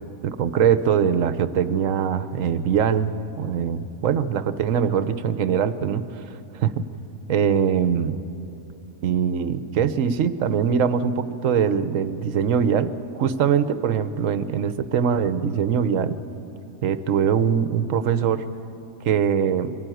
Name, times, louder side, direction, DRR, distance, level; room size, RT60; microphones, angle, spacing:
voice 1, 0.2-6.3 6.5-6.9 7.3-8.1 9.0-16.2 16.8-18.4 19.0-19.7, right 7 dB, 65° right, 13 dB, 1.1 m, -22 dB
23.0 x 14.5 x 9.2 m, 3.0 s
omnidirectional pair, 1.5 m